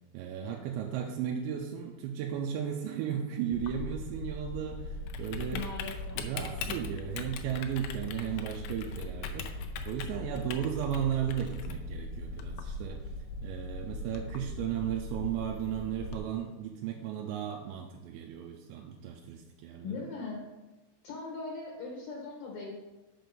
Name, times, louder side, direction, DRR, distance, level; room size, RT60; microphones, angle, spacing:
voice 1, 0.1-5.7 6.2-13.0 13.4-20.1, right 9 dB, 85° right, 1 dB, 2.9 m, -35 dB
Typing, 3.5-16.2, left 2 dB, 80° left, 2.8 m, -39 dB
voice 2, 5.5-6.2 19.8-20.4 21.0-22.7, left 4 dB, 65° left, -2 dB, 2.3 m, -39 dB
7.4 x 6.1 x 5.2 m, 1.1 s
omnidirectional pair, 5.2 m